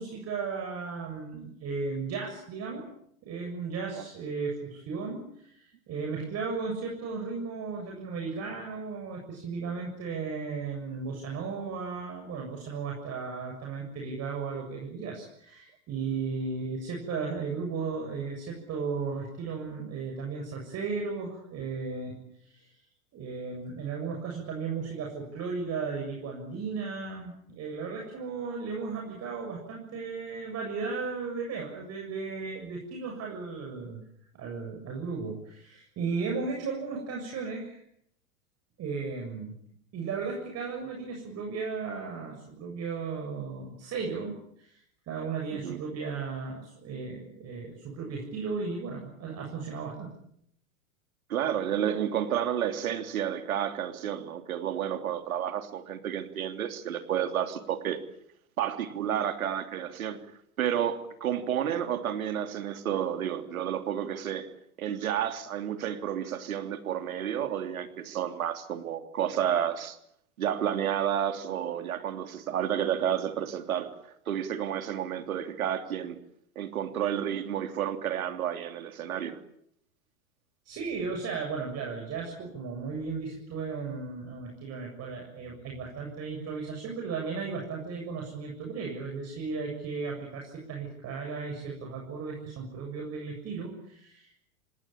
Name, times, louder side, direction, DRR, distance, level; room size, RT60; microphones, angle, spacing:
voice 1, 0.0-2.9 3.2-22.2 22.5-22.7 23.1-34.0 34.3-37.8 38.8-39.5 39.9-44.3 44.6-50.1 80.7-94.4, right 4 dB, 35° right, 1 dB, 7.5 m, -35 dB
voice 2, 51.3-58.0 58.6-60.2 60.6-64.5 64.8-70.0 70.4-73.9 74.3-76.2 76.5-79.4, right 9 dB, 75° right, 8 dB, 3.2 m, -31 dB
28.0 x 19.0 x 8.8 m, 0.71 s
hypercardioid pair, 100°, 43 cm